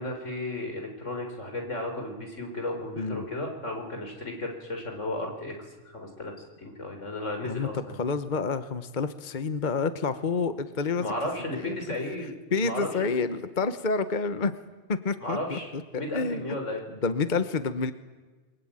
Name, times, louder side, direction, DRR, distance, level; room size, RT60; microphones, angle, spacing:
voice 1, 0.0-5.6 5.8-8.0 11.0-12.3 12.6-13.1 15.2-16.8, left 1 dB, 90° left, 3 dB, 4.8 m, -34 dB
voice 2, 7.4-11.1 11.6-11.8 12.5-14.5 14.9-15.8 16.1-16.6 17.0-17.9, left 4 dB, 40° left, 11 dB, 1.2 m, -28 dB
29.0 x 23.0 x 8.9 m, 1.3 s
omnidirectional pair, 1.2 m